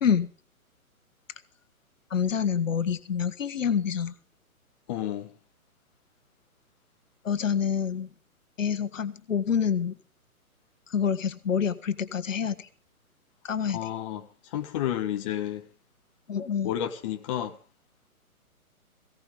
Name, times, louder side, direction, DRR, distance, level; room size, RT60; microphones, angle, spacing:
voice 1, 2.1-4.1 7.2-8.1 8.6-9.9 10.9-12.7 13.4-13.9 16.3-16.7, left 7 dB, 60° left, 1.5 m, -27 dB
voice 2, 4.9-5.3 13.7-15.7 16.6-17.6, left 11 dB, 20° left, 0.8 m, -31 dB
19.0 x 16.5 x 3.5 m
figure-of-eight pair, 135°, 43 cm